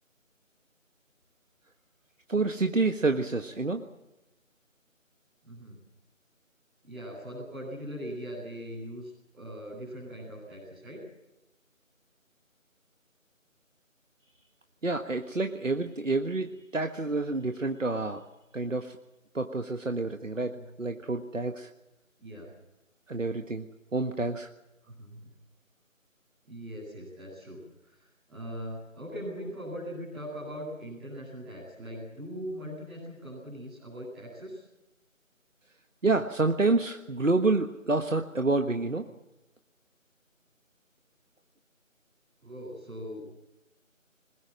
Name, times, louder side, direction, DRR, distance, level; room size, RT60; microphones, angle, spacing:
voice 1, 2.3-3.9 14.8-18.3 18.5-19.0 19.3-21.7 23.1-23.6 23.9-24.5 36.0-39.1, right 3 dB, 65° right, 6 dB, 1.6 m, -28 dB
voice 2, 5.4-5.7 6.8-11.0 20.5-20.6 22.2-22.5 25.0-25.3 26.4-27.6 27.8-34.6 42.4-43.2, equal, ahead, -13 dB, 2.7 m, -40 dB
21.5 x 20.5 x 7.6 m, 0.95 s
figure-of-eight pair, 165°, 40 cm